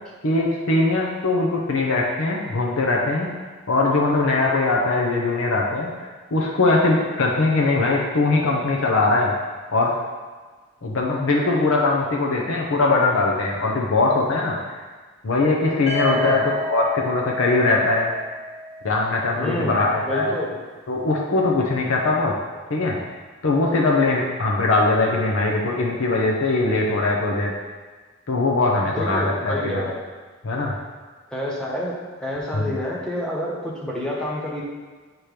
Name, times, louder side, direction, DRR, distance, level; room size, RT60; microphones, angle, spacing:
voice 1, 0.2-3.3 3.7-5.9 6.3-9.3 9.7-9.9 10.8-14.8 15.2-18.1 18.8-20.3 20.9-22.3 22.7-23.0 23.4-27.5 28.3-29.8 30.4-30.7 32.5-32.7, left 3 dB, 80° left, -2 dB, 0.7 m, -21 dB
sound 1, 15.9-19.7, equal, 30° left, 1.2 m, -31 dB
voice 2, 16.1-16.4 19.3-20.5 28.9-29.9 31.3-34.6, left 1 dB, 5° left, -5 dB, 1.0 m, -28 dB
7.8 x 2.9 x 5.0 m, 1.4 s
head